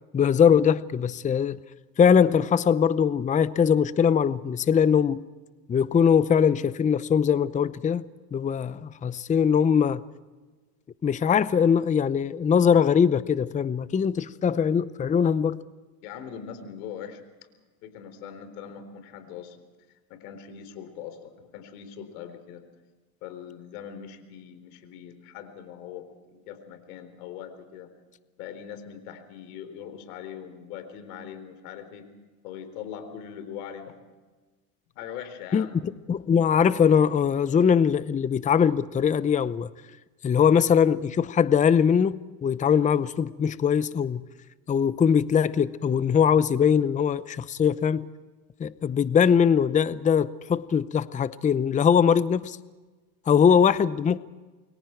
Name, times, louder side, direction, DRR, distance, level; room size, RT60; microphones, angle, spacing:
voice 1, 0.1-1.6 2.0-5.2 5.7-10.0 11.0-15.6 35.5-39.7 40.2-44.2 44.7-48.1 48.6-52.6 53.3-54.2, left 7 dB, 15° left, 0.7 m, -21 dB
voice 2, 16.0-17.2 17.8-19.6 20.1-22.6 23.2-27.9 28.4-32.1 32.4-33.9 35.0-35.8, left 8 dB, 80° left, 4.2 m, -41 dB
29.0 x 23.0 x 4.6 m
supercardioid pair, 110°, 44 cm